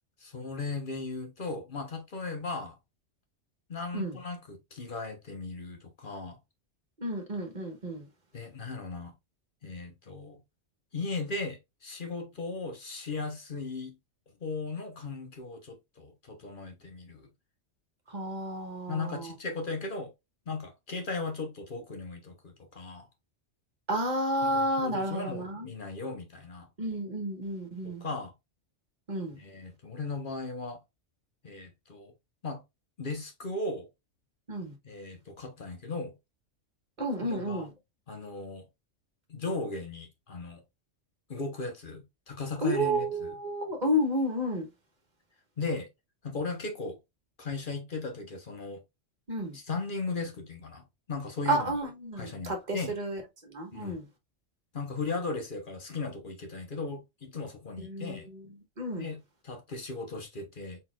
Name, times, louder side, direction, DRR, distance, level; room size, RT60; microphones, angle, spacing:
voice 1, 0.2-2.8 3.7-6.4 8.3-9.1 9.6-10.4 10.9-13.9 14.4-17.3 18.9-20.1 20.5-23.1 24.4-26.7 27.8-28.3 29.3-30.8 31.4-32.1 32.4-32.6 33.0-33.9 34.8-36.1 37.2-37.7 38.1-38.7 39.3-40.6 41.3-43.4 45.6-45.9 46.2-47.0 47.4-48.8 49.5-51.7 52.2-53.0 53.7-54.0 54.7-58.3 59.0-59.2 59.4-60.8, left 3 dB, 45° left, 1.1 m, -37 dB
voice 2, 7.0-8.0 18.1-19.3 23.9-25.7 26.8-28.0 29.1-29.4 34.5-34.7 37.0-37.7 42.6-44.7 49.3-49.6 51.5-54.0 57.8-58.4 58.8-59.1, equal, 40° right, 1.4 m, -31 dB
4.4 x 4.0 x 2.3 m
omnidirectional pair, 1.2 m